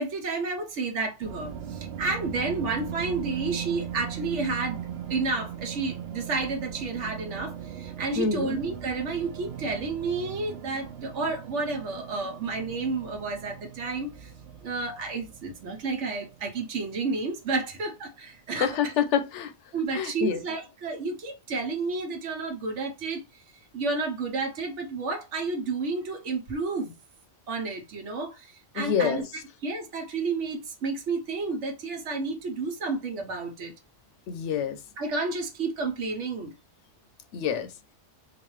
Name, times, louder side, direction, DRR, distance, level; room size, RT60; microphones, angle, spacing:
voice 1, 0.0-4.8 5.1-14.3 14.6-18.9 19.7-23.2 23.7-26.9 27.5-29.2 29.6-33.7 35.0-36.5, right 3 dB, 90° right, 1.2 m, -31 dB
sound 1, 1.2-18.1, right 9 dB, 70° right, 0.9 m, -39 dB
voice 2, 8.2-8.5 18.6-19.5 19.9-20.4 28.7-29.3 34.3-34.8 37.3-37.7, left 7 dB, 85° left, 0.9 m, -27 dB
3.9 x 2.6 x 3.1 m
omnidirectional pair, 1.2 m